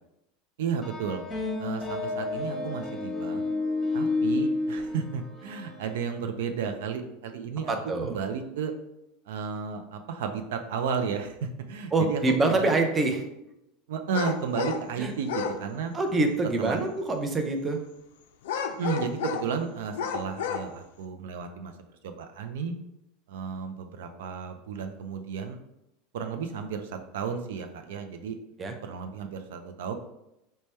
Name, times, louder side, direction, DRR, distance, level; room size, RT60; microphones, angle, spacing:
voice 1, 0.6-1.2 1.6-3.4 3.9-7.7 8.0-8.7 9.3-12.8 13.9-15.9 16.6-16.8 18.8-21.7 22.0-22.7 23.3-25.6 26.1-28.4 28.8-29.9, right 6 dB, 85° right, 6 dB, 0.4 m, -33 dB
sound 1, 0.8-6.0, left 3 dB, 15° left, 0.9 m, -30 dB
voice 2, 7.7-8.1 11.9-13.2 15.0-15.1 15.9-17.8 28.6-28.7, right 2 dB, 20° right, 5 dB, 0.5 m, -25 dB
sound 2, 14.1-14.8 15.2-15.6 18.4-19.5 19.9-20.7, left 7 dB, 85° left, 0.3 m, -31 dB
3.3 x 2.1 x 4.2 m, 0.87 s
supercardioid pair, 125°, 0 cm